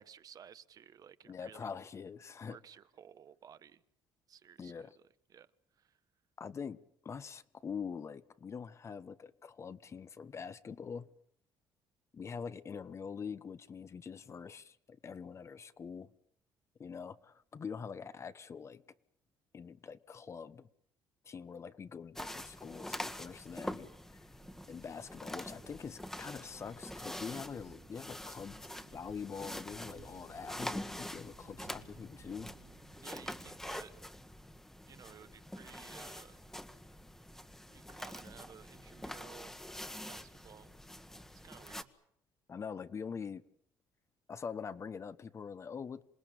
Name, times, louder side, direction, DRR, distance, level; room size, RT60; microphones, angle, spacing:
voice 1, 0.0-1.7 2.4-3.8 4.3-5.0 5.3-6.0 33.0-33.9 34.9-36.4 37.7-39.6 40.1-40.8 41.3-41.9, right 8 dB, 50° right, 1.2 m, -56 dB
voice 2, 1.3-2.6 4.6-4.9 6.4-6.8 7.0-11.1 12.1-16.1 16.8-18.8 19.5-20.7 21.2-23.9 24.7-32.5 42.5-43.4 44.3-46.0, left 6 dB, 35° left, 1.1 m, -44 dB
sound 1, 22.2-41.8, left 1 dB, 5° left, 1.5 m, -45 dB
sound 2, 24.4-33.7, right 9 dB, 80° right, 4.0 m, -62 dB
27.5 x 19.0 x 8.8 m
cardioid pair, 105°, 8 cm